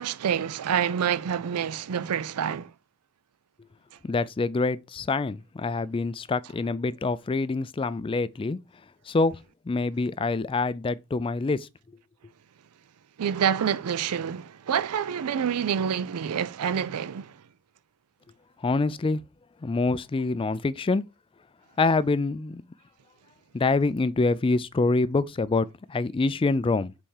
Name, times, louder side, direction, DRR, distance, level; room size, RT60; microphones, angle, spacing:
voice 1, 0.0-2.7 13.2-17.4, right 8 dB, 80° right, 0.4 m, -27 dB
voice 2, 4.0-8.6 9.1-9.3 9.7-11.7 18.6-19.2 19.6-21.0 21.8-22.6 23.5-26.9, left 3 dB, 25° left, 0.3 m, -26 dB
5.6 x 4.2 x 4.7 m
head